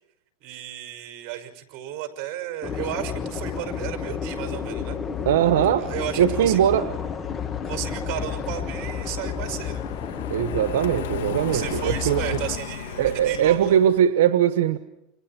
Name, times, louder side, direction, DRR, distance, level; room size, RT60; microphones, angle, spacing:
voice 1, 0.4-5.0 5.8-6.6 7.6-9.8 11.5-13.8, right 12 dB, 50° right, 6 dB, 5.8 m, -33 dB
sound 1, 2.6-12.6, left 7 dB, 25° left, 1.6 m, -31 dB
voice 2, 5.2-5.9 6.2-6.9 10.3-12.2 13.0-14.8, right 10 dB, 90° right, 10 dB, 1.2 m, -20 dB
Car passing by, 5.5-14.1, left 10 dB, 90° left, 2.6 m, -38 dB
29.5 x 26.5 x 4.5 m, 0.88 s
supercardioid pair, 130°, 0 cm